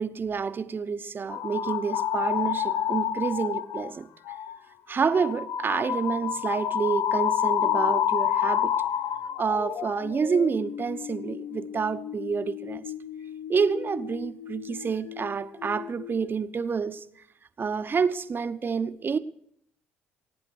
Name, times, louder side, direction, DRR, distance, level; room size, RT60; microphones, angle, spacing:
voice 1, 0.0-4.1 4.9-8.7 9.4-12.8 13.5-17.0 17.6-19.2, right 5 dB, 35° right, 0.9 m, -28 dB
sound 1, 1.3-3.9 4.3-4.6 5.0-15.3 15.6-16.3, left 9 dB, 65° left, 0.7 m, -30 dB
21.5 x 9.7 x 6.3 m
figure-of-eight pair, 50°, 6 cm